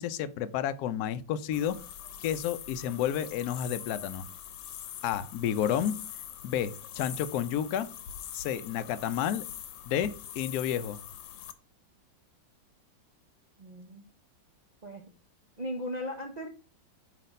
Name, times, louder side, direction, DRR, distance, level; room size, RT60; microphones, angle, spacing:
voice 1, 0.0-1.8 2.2-4.3 5.0-5.9 6.4-7.9 8.3-9.4 9.9-11.0, left 10 dB, 70° left, 0.9 m, -31 dB
sound 1, 1.5-11.5, left 10 dB, 85° left, 1.4 m, -43 dB
voice 2, 13.6-14.0 14.8-15.1 15.6-16.5, equal, 75° right, 0.4 m, -37 dB
5.9 x 3.3 x 5.1 m
omnidirectional pair, 2.1 m